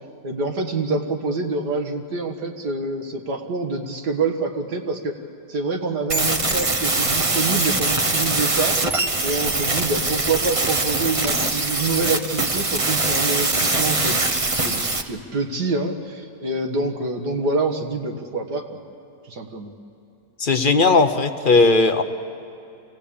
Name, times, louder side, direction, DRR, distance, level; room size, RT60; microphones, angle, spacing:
voice 1, 0.2-5.2 5.5-8.8 9.2-14.2 14.6-14.8 15.1-18.8 19.3-19.7, right 3 dB, 75° right, 4 dB, 2.2 m, -26 dB
sound 1, 6.1-15.0, right 2 dB, 25° right, 0.8 m, -22 dB
voice 2, 20.4-22.0, left 3 dB, 40° left, 7 dB, 0.8 m, -17 dB
27.0 x 17.0 x 8.6 m, 2.9 s
omnidirectional pair, 1.8 m